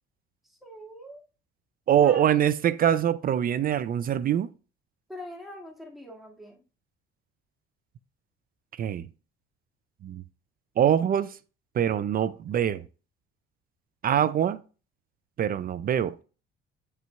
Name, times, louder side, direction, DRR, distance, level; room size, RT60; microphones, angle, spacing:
voice 1, 0.4-1.2 2.0-2.4 5.1-6.6, left 1 dB, ahead, 1.8 m, -43 dB
voice 2, 1.9-4.5 8.8-9.1 10.0-10.2 10.8-11.4 11.7-12.8 14.0-14.6 15.4-16.2, right 10 dB, 30° right, 0.3 m, -24 dB
7.3 x 6.5 x 2.2 m
figure-of-eight pair, 50°, 34 cm